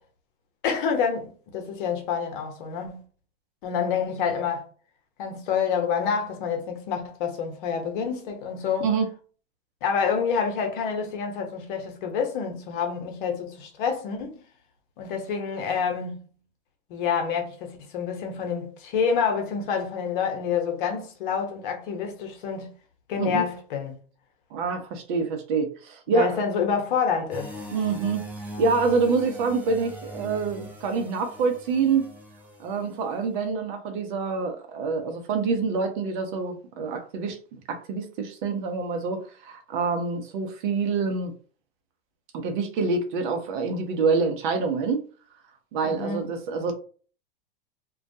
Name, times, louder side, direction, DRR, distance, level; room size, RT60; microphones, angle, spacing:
voice 1, 0.6-3.0 3.6-4.6 5.2-8.9 9.8-14.4 15.0-16.3 16.9-22.7 23.1-23.9 26.1-27.5 45.8-46.3, left 6 dB, 60° left, 0.9 m, -28 dB
voice 2, 24.5-26.4 27.7-28.3 28.6-32.1 32.6-41.3 42.3-45.0 45.7-46.7, right 4 dB, 55° right, 0.7 m, -26 dB
sound 1, 27.3-33.2, equal, 5° right, 0.7 m, -41 dB
2.3 x 2.2 x 2.7 m
hypercardioid pair, 100°, 29 cm